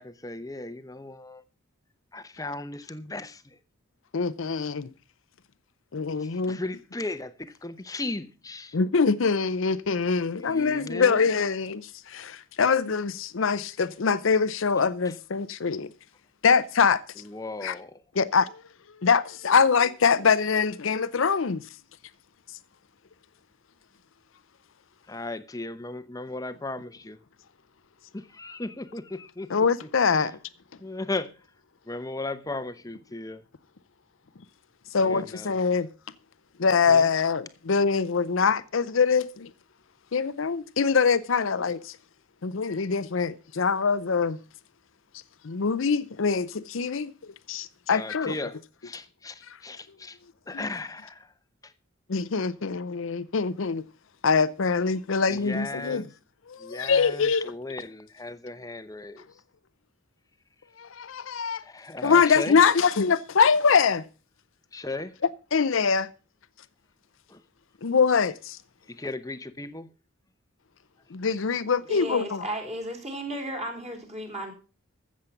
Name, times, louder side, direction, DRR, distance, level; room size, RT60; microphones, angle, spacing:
voice 1, 0.0-1.4 2.1-3.4 6.2-8.7 10.4-11.3 17.3-18.0 25.1-27.2 28.1-29.5 30.8-31.3 31.9-33.4 35.0-35.5 36.9-37.1 47.9-48.6 48.8-50.2 50.5-51.3 55.3-56.0 56.6-59.3 61.6-62.6 64.7-65.1 67.3-67.4 69.0-69.9, left 2 dB, 15° left, 0.8 m, -36 dB
voice 2, 4.1-4.9 5.9-6.6 8.7-15.9 16.4-17.0 17.6-17.8 18.1-18.6 19.0-21.6 29.5-30.3 34.9-35.9 36.6-39.5 40.1-42.0 42.4-44.4 45.4-48.4 50.5-50.7 52.1-53.8 54.2-56.1 56.5-57.5 60.8-61.6 62.0-64.0 65.5-66.1 67.8-68.6 71.1-72.5, left 5 dB, 75° left, 0.6 m, -24 dB
voice 3, 71.9-74.5, right 1 dB, 30° right, 3.7 m, -34 dB
14.5 x 7.4 x 5.8 m
head